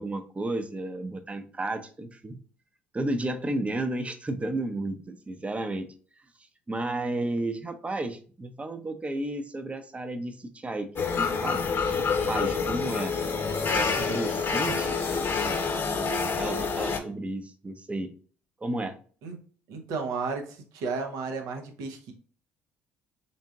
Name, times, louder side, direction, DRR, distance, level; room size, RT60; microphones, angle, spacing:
voice 1, 0.0-2.4 2.9-5.9 6.7-11.6 12.0-13.1 13.7-18.1 18.6-19.0, right 2 dB, 20° right, 9 dB, 0.6 m, -33 dB
sound 1, 11.0-17.0, left 5 dB, 40° left, 0.9 m, -27 dB
voice 2, 19.7-22.1, right 4 dB, 75° right, 4 dB, 0.8 m, -33 dB
3.9 x 3.6 x 2.4 m, 0.43 s
hypercardioid pair, 55°, 6 cm